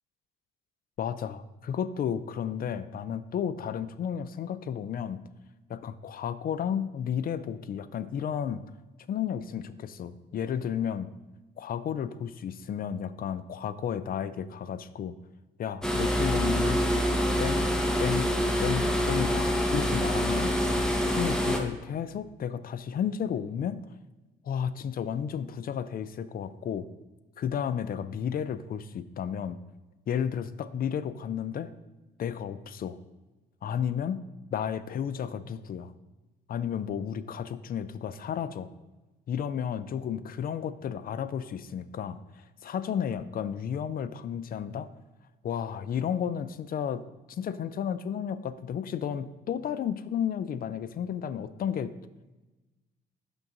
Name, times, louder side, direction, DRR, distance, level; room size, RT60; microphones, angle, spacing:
voice 1, 1.0-5.2 5.7-8.6 9.1-11.1 11.6-15.1 15.6-16.8 17.4-17.7 18.0-18.3 18.6-20.5 21.1-23.8 24.4-26.9 27.4-29.6 30.1-31.7 32.2-33.0 33.6-34.2 34.5-35.9 36.5-38.7 39.3-44.9 45.4-51.9, left 8 dB, 50° left, 14 dB, 0.4 m, -32 dB
sound 1, 15.8-21.6, equal, 5° left, 0.8 m, -26 dB
5.3 x 3.6 x 5.8 m, 1.1 s
cardioid pair, 90°, 20 cm